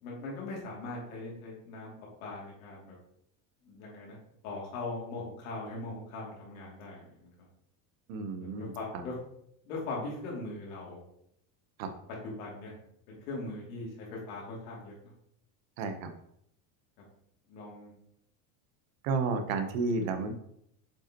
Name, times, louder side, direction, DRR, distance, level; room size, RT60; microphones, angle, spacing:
voice 1, 0.0-1.9 2.2-2.9 3.6-4.2 4.4-7.3 8.4-9.2 9.6-11.0 12.1-12.7 13.1-14.9 17.5-17.9, left 2 dB, 80° left, -3 dB, 2.8 m, -40 dB
voice 2, 8.1-8.7 11.8-11.9 15.8-16.1 19.0-20.3, right 4 dB, 70° right, 7 dB, 1.1 m, -31 dB
7.4 x 5.1 x 3.0 m, 0.74 s
cardioid pair, 175°, 42 cm